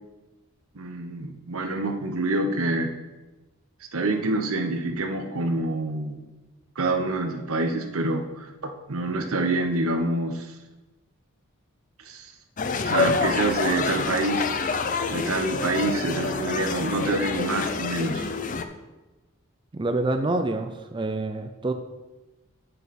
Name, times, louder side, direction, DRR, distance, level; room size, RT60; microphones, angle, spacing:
voice 1, 0.7-2.9 3.9-6.2 6.8-10.5 12.1-12.3 12.8-14.7 15.1-18.3, right 2 dB, 85° right, 5 dB, 0.9 m, -27 dB
sound 1, 12.6-18.6, left 4 dB, 35° left, 0.5 m, -27 dB
voice 2, 19.7-21.7, right 2 dB, 20° right, 7 dB, 0.4 m, -27 dB
8.3 x 6.8 x 4.2 m, 1.1 s
head